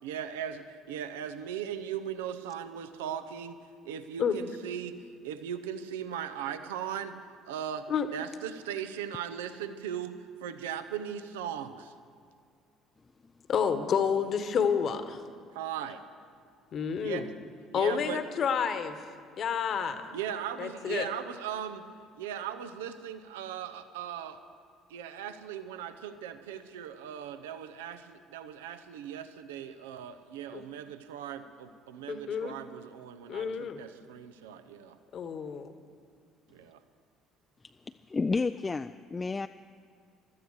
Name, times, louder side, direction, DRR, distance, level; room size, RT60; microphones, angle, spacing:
voice 1, 0.0-3.6 3.8-5.0 5.2-7.9 8.1-11.9 15.5-16.0 17.0-17.2 17.7-18.2 20.1-21.9 22.2-24.4 24.9-35.0 36.5-36.8, right 9 dB, 75° right, 10 dB, 0.7 m, -38 dB
voice 2, 13.5-15.2 16.7-17.3 17.7-19.0 19.4-20.1 20.6-21.1 30.5-30.7 32.1-32.5 33.3-33.8 35.1-35.7, left 7 dB, 50° left, 10 dB, 1.2 m, -29 dB
voice 3, 38.1-39.5, left 4 dB, 25° left, 10 dB, 0.3 m, -30 dB
15.5 x 12.5 x 6.4 m, 2.3 s
hypercardioid pair, 55°, 0 cm